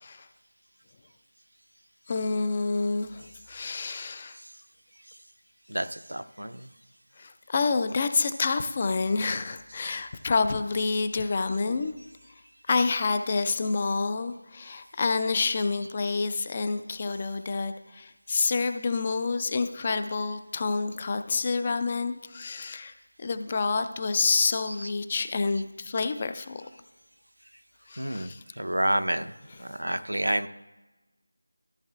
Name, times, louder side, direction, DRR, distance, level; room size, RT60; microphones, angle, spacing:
voice 1, 2.1-4.4 7.2-11.9 12.7-26.6 27.9-28.4, left 4 dB, 25° left, 10 dB, 0.3 m, -28 dB
voice 2, 5.7-6.7 24.8-24.9 28.0-28.3 28.6-29.3 29.6-30.5, right 1 dB, 70° right, 9 dB, 0.5 m, -29 dB
14.0 x 7.8 x 2.2 m, 1.1 s
figure-of-eight pair, 165°, 0 cm